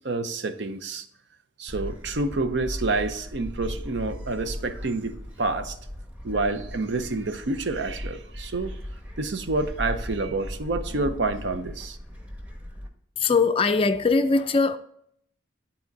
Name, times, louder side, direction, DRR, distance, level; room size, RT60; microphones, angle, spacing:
voice 1, 0.0-1.1 1.6-5.8 6.2-8.8 9.2-12.0, right 3 dB, 60° right, 0.7 m, -28 dB
Gull seagull, 1.7-12.9, equal, 10° right, 1.0 m, -37 dB
voice 2, 13.2-14.8, left 4 dB, 30° left, 0.4 m, -21 dB
11.0 x 4.3 x 3.9 m
head